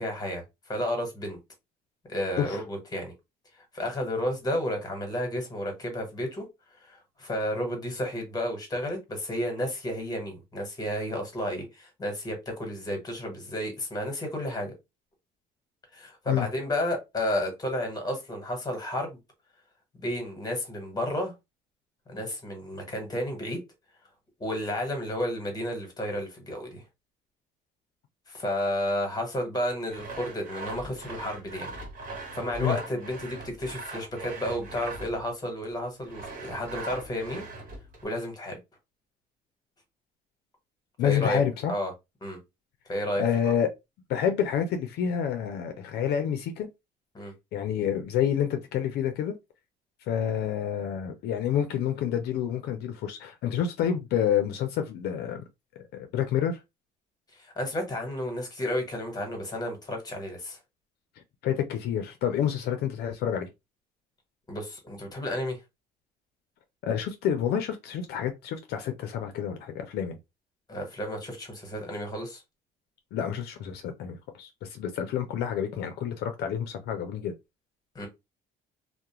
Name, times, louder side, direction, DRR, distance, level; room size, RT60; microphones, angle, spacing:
voice 1, 0.0-1.4 2.1-3.1 3.6-6.4 6.8-14.7 15.9-19.2 19.9-21.3 22.1-23.6 24.4-26.8 28.3-31.7 32.3-37.4 38.0-38.6 41.0-41.4 41.7-41.9 42.2-42.4 42.9-43.2 47.1-47.3 57.3-60.6 64.5-65.6 70.7-72.4 77.9-78.1, left 1 dB, 20° left, 1.2 m, -32 dB
Sawing, 29.9-35.3 36.0-38.0, right 3 dB, 50° right, 1.1 m, -41 dB
voice 2, 41.0-41.7 43.2-43.7 44.1-46.7 47.5-49.3 50.1-55.4 55.9-56.6 61.4-63.5 66.8-70.2 73.1-77.3, left 9 dB, 75° left, 0.5 m, -28 dB
2.3 x 2.1 x 2.9 m
cardioid pair, 110°, 17 cm